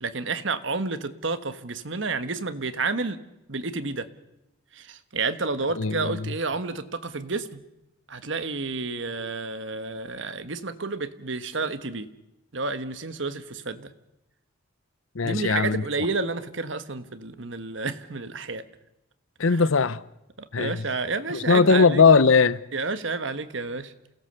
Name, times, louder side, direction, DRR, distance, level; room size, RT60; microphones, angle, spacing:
voice 1, 0.0-3.2 3.5-4.1 4.7-7.6 8.1-12.1 12.5-13.9 15.2-18.6 19.5-19.6 20.4-22.0 22.7-23.9, right 3 dB, 65° right, 1.4 m, -30 dB
voice 2, 5.8-6.3 15.1-15.8 19.4-20.0 20.5-20.8 21.3-22.6, left 4 dB, 85° left, 0.8 m, -19 dB
28.5 x 17.5 x 6.9 m
head